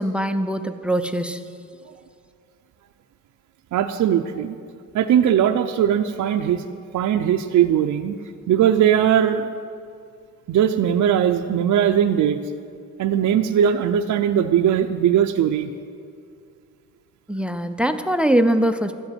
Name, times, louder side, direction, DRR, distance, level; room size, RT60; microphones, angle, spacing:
voice 1, 0.0-1.4 17.3-18.9, right 1 dB, 5° right, 10 dB, 0.4 m, -22 dB
voice 2, 3.7-4.6 4.9-6.7 6.9-8.1 8.5-9.5 10.5-12.4 13.0-15.7, right 9 dB, 65° right, 5 dB, 0.6 m, -19 dB
13.0 x 7.9 x 9.1 m, 2.3 s
wide cardioid pair, 165°, 32 cm